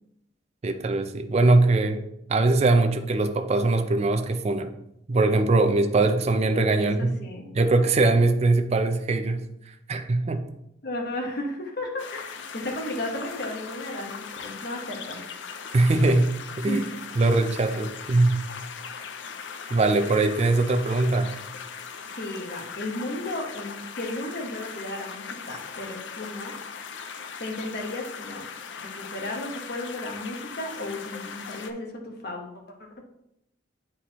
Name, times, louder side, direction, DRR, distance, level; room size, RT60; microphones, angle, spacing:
voice 1, 0.6-2.0 2.3-4.7 5.1-7.1 7.5-9.4 9.9-10.4 15.7-16.3 16.6-16.8 17.2-18.4 19.7-21.3, right 2 dB, 35° right, 7 dB, 0.4 m, -21 dB
voice 2, 6.8-7.5 10.8-15.2 16.6-17.0 22.1-26.6 27.4-28.4 28.7-33.0, left 1 dB, 55° left, 1 dB, 1.2 m, -34 dB
sound 1, 12.0-31.7, left 6 dB, 75° left, 0.5 m, -39 dB
8.3 x 4.4 x 3.0 m, 0.82 s
head